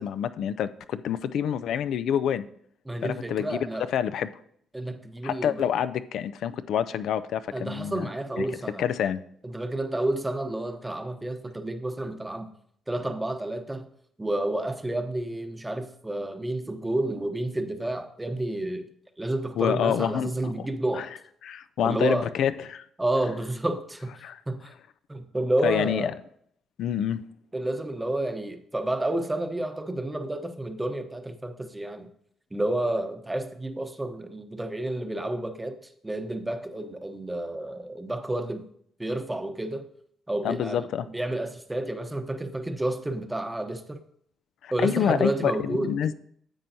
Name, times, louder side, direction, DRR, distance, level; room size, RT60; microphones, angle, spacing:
voice 1, 0.0-2.5 3.0-3.6 3.9-4.3 5.2-8.1 8.4-8.5 8.8-9.2 19.6-20.7 21.0-21.1 21.4-22.9 24.2-24.4 25.6-26.1 26.8-27.2 40.4-41.1 44.6-46.2, left 9 dB, 75° left, 0.4 m, -27 dB
voice 2, 2.9-3.9 4.7-5.6 7.5-8.8 9.4-12.5 12.9-13.9 14.2-18.9 19.2-21.1 21.8-22.3 23.0-24.7 25.1-26.1 27.5-32.1 32.5-35.8 36.0-38.7 39.0-39.9 40.3-44.0 44.7-45.9, right 1 dB, 10° right, 0.9 m, -30 dB
10.0 x 7.5 x 2.7 m
cardioid pair, 90°, 0 cm